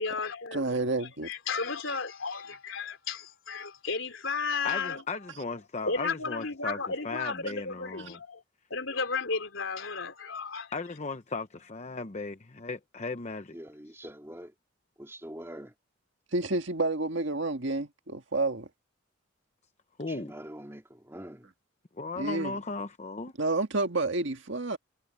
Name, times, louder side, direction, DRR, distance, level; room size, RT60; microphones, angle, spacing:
voice 1, 0.0-5.0 5.9-8.4 8.7-10.7, left 4 dB, 70° left, 3.8 m, -34 dB
voice 2, 0.5-1.3 16.3-18.7 22.2-22.5 23.4-24.8, right 2 dB, 60° right, 1.9 m, -29 dB
voice 3, 4.6-6.8 7.0-8.2 10.7-13.6 15.1-15.2 20.0-20.3 21.9-23.3, left 3 dB, 35° left, 0.8 m, -36 dB
voice 4, 13.5-14.5 15.0-15.7 20.1-21.5, right 1 dB, 10° right, 2.7 m, -44 dB
head